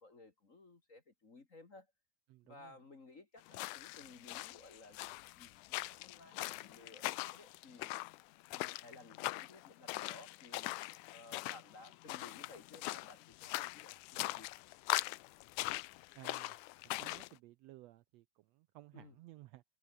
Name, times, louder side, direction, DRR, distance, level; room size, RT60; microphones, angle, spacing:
voice 1, 0.0-1.9 2.4-5.0 5.3-7.9 8.5-10.7 11.1-14.5 18.9-19.2, left 2 dB, 30° left, 1.8 m, -57 dB
voice 2, 2.3-2.8 16.1-16.6 17.0-19.6, right 17 dB, 85° right, 1.5 m, -57 dB
sound 1, 3.5-17.3, left 20 dB, 85° left, 2.1 m, -42 dB
omnidirectional pair, 3.6 m